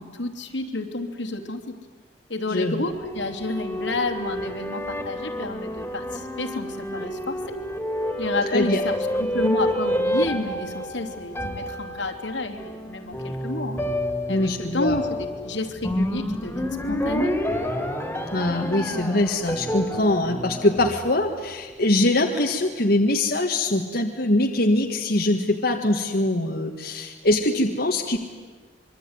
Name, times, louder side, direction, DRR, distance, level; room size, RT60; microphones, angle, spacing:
voice 1, 0.0-1.8 2.3-7.6 8.2-13.8 14.3-17.3, left 2 dB, 85° left, 4 dB, 3.1 m, -30 dB
voice 2, 2.5-2.9 8.5-8.8 14.3-15.0 18.3-28.2, left 1 dB, 60° left, 2 dB, 1.8 m, -23 dB
sound 1, 2.9-21.5, equal, 10° left, 3.2 m, -29 dB
26.0 x 23.5 x 9.7 m, 1.4 s
head